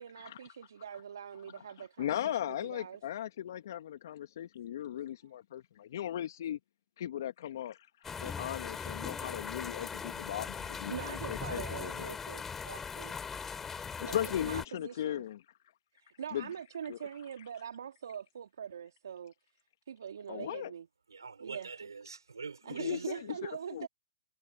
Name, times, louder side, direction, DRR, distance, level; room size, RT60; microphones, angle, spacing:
voice 1, 0.0-3.0 10.9-13.2 14.0-15.2 15.9-19.3 19.9-20.9 21.4-21.9 22.6-23.9, right 8 dB, 70° right, 3.2 m, -43 dB
voice 2, 1.5-6.6 7.0-12.2 14.0-15.4 16.3-16.5 16.9-17.0 20.3-20.7 22.7-23.9, left 11 dB, 60° left, 1.8 m, -38 dB
sound 1, 8.0-14.7, left 6 dB, 15° left, 7.0 m, -40 dB
voice 3, 21.1-23.2, right 5 dB, 85° right, 4.2 m, -45 dB
hypercardioid pair, 125°, 2 cm